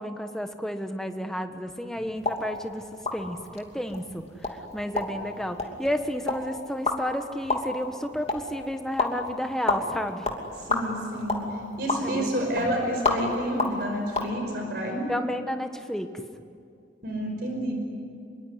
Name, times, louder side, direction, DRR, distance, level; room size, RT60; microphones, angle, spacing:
voice 1, 0.0-2.8 3.1-10.3 12.0-12.8 15.1-16.1, equal, 5° left, 6 dB, 1.3 m, -32 dB
sound 1, 2.2-14.3, left 2 dB, 30° left, 2.8 m, -32 dB
voice 2, 10.6-11.5 11.8-15.1 17.0-17.7, equal, 55° right, 2 dB, 5.3 m, -29 dB
25.0 x 23.5 x 9.9 m, 2.5 s
head